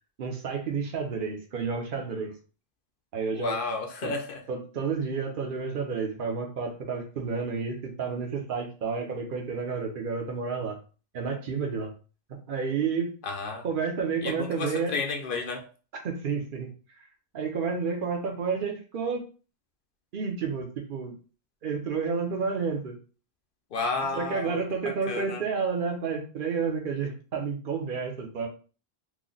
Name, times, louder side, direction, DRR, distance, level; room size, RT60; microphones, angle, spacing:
voice 1, 0.2-2.3 3.1-3.6 4.0-4.1 4.5-10.8 11.1-11.9 12.5-13.2 13.6-15.0 16.0-16.7 17.0-17.1 17.3-19.2 20.1-21.2 21.6-23.0 24.1-28.5, right 5 dB, 55° right, 2 dB, 0.9 m, -30 dB
voice 2, 3.3-4.4 13.2-13.6 14.2-15.7 23.7-24.6 24.9-25.4, left 4 dB, 60° left, 3 dB, 0.8 m, -32 dB
3.1 x 2.2 x 3.8 m, 0.36 s
omnidirectional pair, 1.1 m